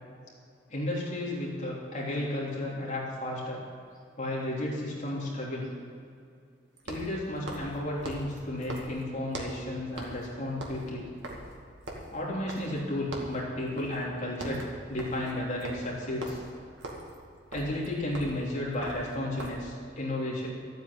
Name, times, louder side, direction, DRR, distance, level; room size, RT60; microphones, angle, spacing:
voice 1, 0.7-3.6 4.2-5.7 6.9-11.1 12.1-16.4 17.5-20.5, left 1 dB, 40° left, -5 dB, 3.6 m, -33 dB
sound 1, 3.5-3.6 6.8-9.7 10.0-10.3 10.5-12.9 13.1-13.4 13.8-14.0 14.3-19.7, right 1 dB, 70° right, 2.3 m, -42 dB
13.0 x 9.2 x 8.4 m, 2.4 s
head